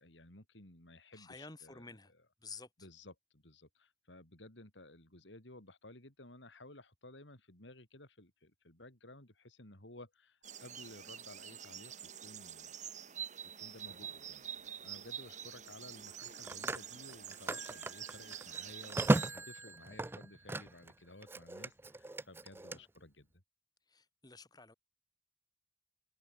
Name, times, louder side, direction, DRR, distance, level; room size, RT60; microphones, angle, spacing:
voice 1, 0.0-1.9 2.8-12.8 13.6-14.5 14.8-23.3, left 1 dB, 75° left, 4.7 m, -55 dB
voice 2, 1.1-2.1 2.4-2.7 22.7-22.9 23.9-24.7, left 4 dB, 20° left, 2.1 m, -51 dB
sound 1, 10.4-19.3, right 9 dB, 40° right, 4.1 m, -47 dB
Telephone, 13.9-14.1 16.1-20.9 21.2-22.8, right 2 dB, 10° right, 0.4 m, -37 dB
head